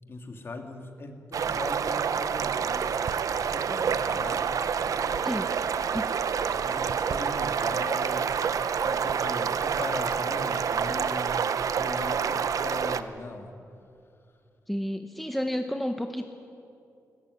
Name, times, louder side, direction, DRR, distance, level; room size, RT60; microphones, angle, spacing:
voice 1, 0.1-3.0 3.5-4.5 4.8-5.4 6.5-8.3 8.8-13.5, left 2 dB, 40° left, 5 dB, 2.4 m, -39 dB
sound 1, 1.3-13.0, right 7 dB, 60° right, 0.8 m, -28 dB
voice 2, 14.7-16.3, equal, ahead, 6 dB, 1.0 m, -31 dB
21.0 x 18.0 x 9.9 m, 2.5 s
wide cardioid pair, 140°, 6 cm